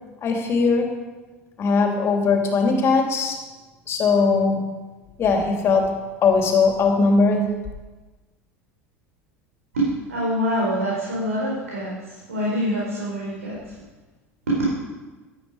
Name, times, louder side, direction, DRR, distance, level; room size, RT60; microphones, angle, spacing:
voice 1, 0.2-0.9 1.6-3.4 3.9-4.7 5.2-6.0 6.2-7.5, left 4 dB, 35° left, 3 dB, 3.0 m, -19 dB
voice 2, 9.7-13.7 14.5-14.6, equal, 75° right, -5 dB, 4.3 m, -25 dB
16.5 x 12.0 x 5.0 m, 1.2 s
figure-of-eight pair, 75°, 8 cm